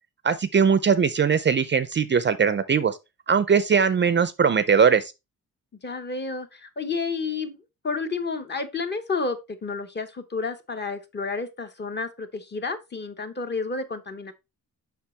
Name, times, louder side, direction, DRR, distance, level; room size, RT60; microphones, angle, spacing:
voice 1, 0.2-3.0 3.3-5.1, right 6 dB, 35° right, 0.4 m, -20 dB
voice 2, 5.8-14.3, left 4 dB, 30° left, 0.9 m, -31 dB
7.3 x 5.7 x 3.2 m
wide cardioid pair, 145°, 33 cm